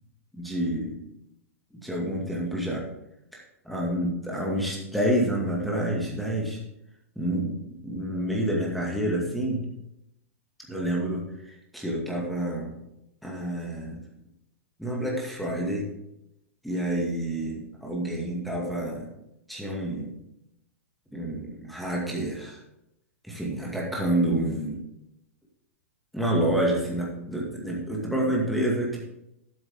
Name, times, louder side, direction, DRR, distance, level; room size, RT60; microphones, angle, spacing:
voice 1, 0.3-1.0 1.7-2.8 3.3-6.6 7.2-7.6 7.8-9.6 10.7-12.8 13.2-14.0 14.8-15.9 16.6-19.1 19.5-20.1 21.1-22.6 23.2-24.8 26.1-29.0, right 1 dB, ahead, -3 dB, 2.1 m, -28 dB
12.0 x 8.5 x 3.7 m, 0.84 s
hypercardioid pair, 125°, 8 cm